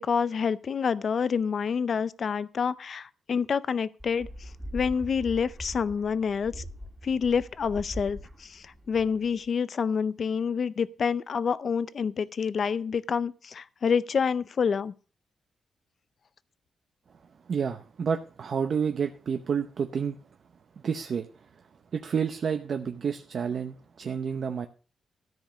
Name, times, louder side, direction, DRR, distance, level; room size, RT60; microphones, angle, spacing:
voice 1, 0.0-6.7 7.0-14.9, left 6 dB, 45° left, 0.5 m, -28 dB
sound 1, 4.0-9.5, equal, 5° right, 2.0 m, -42 dB
voice 2, 17.4-20.2 20.8-24.7, right 6 dB, 45° right, 0.7 m, -30 dB
13.5 x 5.2 x 7.1 m
wide cardioid pair, 170°, 0 cm